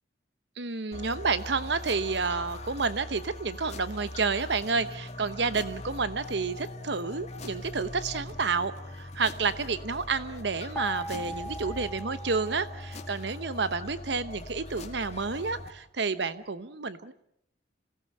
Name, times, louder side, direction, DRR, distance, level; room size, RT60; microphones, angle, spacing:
voice 1, 0.6-17.1, right 4 dB, 65° right, 13 dB, 1.0 m, -30 dB
sound 1, 0.9-15.7, left 1 dB, 35° left, 2.4 m, -41 dB
sound 2, 10.8-13.7, equal, 10° left, 1.7 m, -41 dB
27.5 x 17.5 x 8.8 m, 0.77 s
head